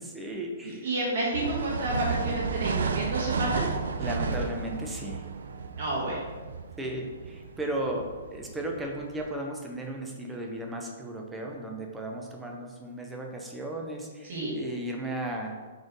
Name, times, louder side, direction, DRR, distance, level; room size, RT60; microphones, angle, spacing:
voice 1, 0.0-0.9 4.0-5.2 6.8-15.6, right 1 dB, 5° right, 1 dB, 0.4 m, -35 dB
voice 2, 0.6-3.6 5.8-6.2 14.3-14.5, right 2 dB, 50° right, -5 dB, 1.2 m, -30 dB
sound 1, 1.3-9.3, right 5 dB, 85° right, 0.4 m, -33 dB
4.1 x 3.1 x 3.9 m, 1.4 s
hypercardioid pair, 170°, 0 cm